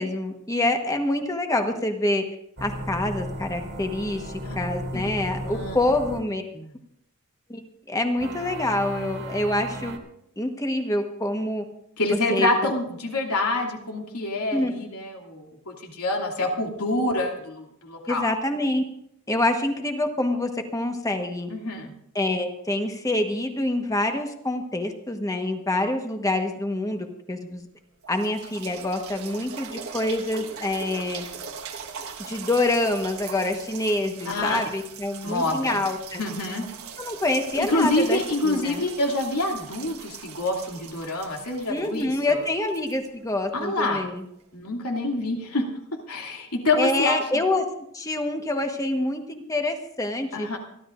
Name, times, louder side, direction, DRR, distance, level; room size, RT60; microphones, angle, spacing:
voice 1, 0.0-2.2 2.6-6.4 7.5-10.0 10.4-11.6 12.3-12.7 14.5-14.7 18.1-18.8 19.3-21.5 22.1-27.7 28.1-31.2 32.3-36.2 37.0-38.8 41.7-44.2 46.7-47.6 47.9-50.5, left 1 dB, 15° left, 5 dB, 1.3 m, -26 dB
sound 1, 2.6-6.3 8.2-10.0, right 1 dB, 50° right, 2.2 m, -35 dB
voice 2, 5.4-5.8 6.5-6.7 12.0-18.2 21.5-21.9 34.2-34.6 35.2-35.8 36.2-36.7 37.5-42.4 43.5-44.0 44.5-45.6 46.1-47.4 50.3-50.6, left 2 dB, 85° left, 0 dB, 2.6 m, -27 dB
sound 2, 27.5-27.6 28.0-43.8 44.4-44.5, right 6 dB, 70° right, 1.5 m, -41 dB
28.5 x 12.0 x 2.6 m, 0.75 s
head